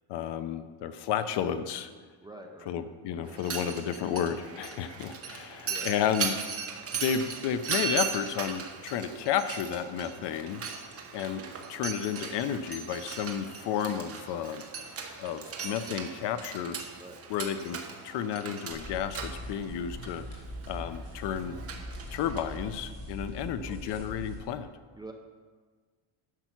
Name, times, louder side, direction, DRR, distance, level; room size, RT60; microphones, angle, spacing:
voice 1, 0.1-1.9 2.7-6.3 6.9-10.6 11.1-11.4 11.7-14.6 15.2-16.8 17.3-17.8 18.0-20.2 20.7-21.6 22.1-24.7, left 8 dB, 55° left, 11 dB, 0.7 m, -32 dB
voice 2, 2.2-2.7 3.2-3.5 5.5-5.9 15.9-16.1 17.0-17.2 23.6-24.0 24.9-25.1, right 2 dB, 10° right, 2 dB, 0.5 m, -47 dB
Mechanisms, 3.2-22.9, right 6 dB, 30° right, 1.1 m, -38 dB
sound 1, 18.7-24.4, equal, 30° left, 2.7 m, -41 dB
11.0 x 6.7 x 5.9 m, 1.5 s
cardioid pair, 170°, 50 cm